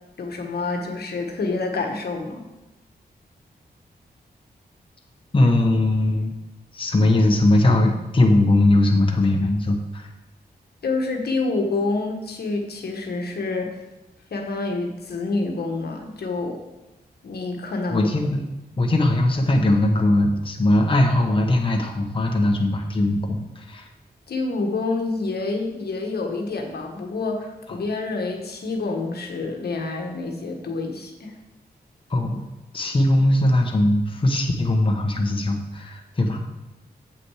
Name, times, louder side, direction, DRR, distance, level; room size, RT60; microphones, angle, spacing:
voice 1, 0.2-2.4 10.8-13.8 14.3-16.6 17.2-18.1 24.3-31.3, left 3 dB, 70° left, 2 dB, 1.2 m, -27 dB
voice 2, 5.3-6.3 6.7-10.1 17.9-18.5 18.8-23.9 32.1-32.5 32.7-36.4, left 1 dB, 30° left, 1 dB, 1.1 m, -20 dB
8.0 x 6.0 x 4.8 m, 1.0 s
wide cardioid pair, 90°, 17 cm